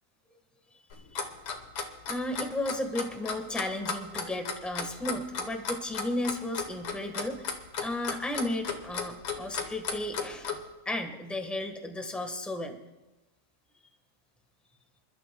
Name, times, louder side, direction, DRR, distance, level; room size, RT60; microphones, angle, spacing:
Clock, 0.9-10.6, left 5 dB, 70° left, 2.0 m, -34 dB
voice 1, 2.1-10.6 10.8-12.8, left 1 dB, ahead, 4 dB, 0.9 m, -34 dB
28.0 x 12.0 x 2.3 m, 1.0 s
omnidirectional pair, 2.4 m